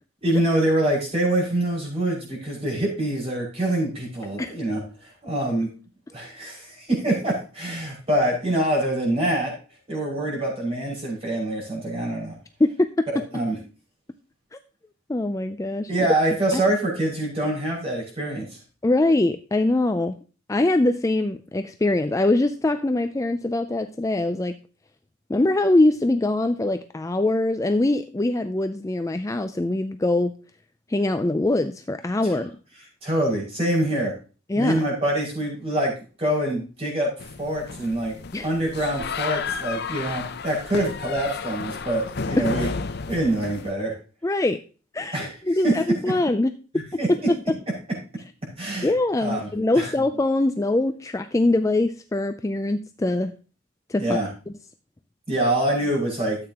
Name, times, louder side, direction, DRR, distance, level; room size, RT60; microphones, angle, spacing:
voice 1, 0.2-5.7 6.1-9.5 9.9-12.3 13.3-13.6 15.9-18.6 32.3-32.4 33.0-34.1 34.5-35.9 36.2-37.1 37.4-38.1 38.4-42.7 43.1-43.9 45.1-45.7 47.0-47.1 48.6-48.9 49.2-49.5 49.8-49.9 54.0-54.3 55.3-56.4, right 1 dB, 30° right, -2 dB, 5.8 m, -25 dB
voice 2, 12.6-13.1 14.5-14.6 15.1-16.1 16.5-16.6 18.8-20.1 20.5-24.6 25.3-30.3 30.9-32.5 34.5-34.8 38.3-38.5 42.4-42.5 44.2-44.6 44.9-45.2 45.4-46.8 47.1-47.2 48.8-53.3 53.9-54.2, left 2 dB, 15° left, 8 dB, 0.4 m, -23 dB
sound 1, 37.2-43.7, left 5 dB, 55° left, 0.6 m, -32 dB
13.0 x 8.6 x 2.9 m, 0.35 s
head